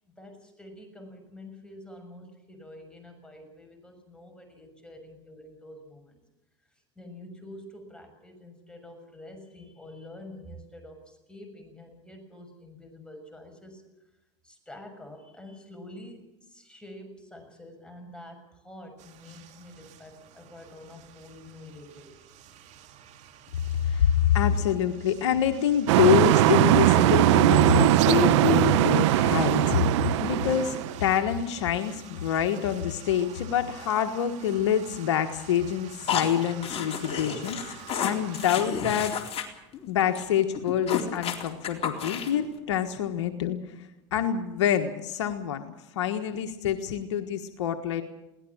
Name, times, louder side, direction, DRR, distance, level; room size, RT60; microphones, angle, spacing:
voice 1, 0.2-6.2 6.7-13.8 14.4-22.1, left 1 dB, 5° left, 4 dB, 6.4 m, -47 dB
sound 1, 19.0-38.7, right 9 dB, 50° right, 3.1 m, -50 dB
voice 2, 23.7-39.2 39.9-48.0, left 9 dB, 85° left, 6 dB, 1.4 m, -26 dB
sound 2, 25.9-31.0, right 15 dB, 75° right, 0.8 m, -20 dB
sound 3, 36.1-39.4 39.7-39.9 40.1-40.2 40.5-42.4, left 7 dB, 45° left, 4.0 m, -31 dB
22.0 x 18.0 x 7.3 m, 0.95 s
supercardioid pair, 100°, 15 cm